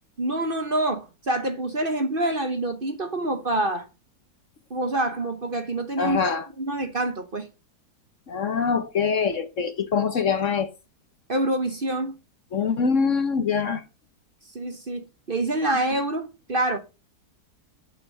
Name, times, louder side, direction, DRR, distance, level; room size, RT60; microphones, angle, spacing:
voice 1, 0.2-3.9 4.7-6.2 6.6-7.5 11.3-12.2 14.5-16.8, right 1 dB, 35° right, 1.2 m, -26 dB
voice 2, 6.0-6.5 8.3-10.7 12.5-13.8, left 6 dB, 50° left, 1.3 m, -24 dB
8.7 x 6.4 x 7.6 m
omnidirectional pair, 1.7 m